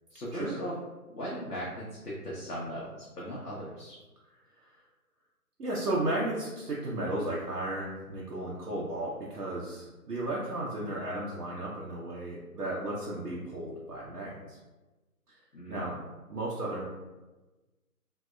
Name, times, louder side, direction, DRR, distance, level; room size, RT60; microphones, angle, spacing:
voice 1, 0.1-0.7 1.1-4.0 15.5-16.0, equal, 75° left, -6 dB, 0.8 m, -38 dB
voice 2, 5.6-14.6 15.7-16.0 16.3-16.8, right 1 dB, 80° right, -6 dB, 0.7 m, -34 dB
2.6 x 2.1 x 2.3 m, 1.2 s
figure-of-eight pair, 145°, 46 cm